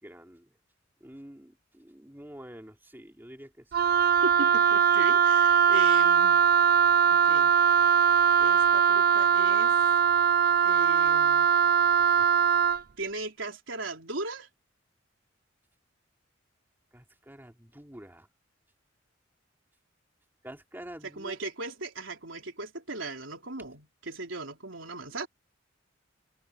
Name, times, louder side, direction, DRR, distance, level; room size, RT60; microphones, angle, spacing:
voice 1, 0.0-0.5 1.0-3.7 12.0-12.2 16.9-18.3 20.4-21.4, right 1 dB, 10° right, 3.0 m, -47 dB
Wind instrument woodwind instrument, 3.7-12.8, right 7 dB, 50° right, 0.5 m, -21 dB
voice 2, 4.2-6.5 7.1-7.5 8.4-9.8 10.6-11.5 13.0-14.5 21.0-25.3, right 2 dB, 75° right, 4.0 m, -38 dB
head